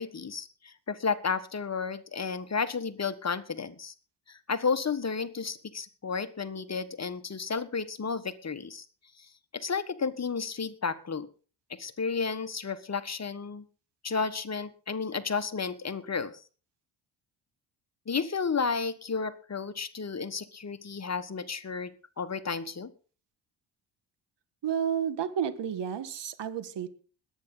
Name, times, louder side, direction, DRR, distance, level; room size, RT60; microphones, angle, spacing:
voice 1, 0.0-3.9 4.3-8.9 9.2-11.3 11.7-13.6 14.0-16.3 18.1-22.9, left 5 dB, 30° left, 11 dB, 1.5 m, -32 dB
voice 2, 24.6-26.9, right 8 dB, 55° right, 12 dB, 1.7 m, -31 dB
21.5 x 9.5 x 4.0 m, 0.38 s
supercardioid pair, 55°, 49 cm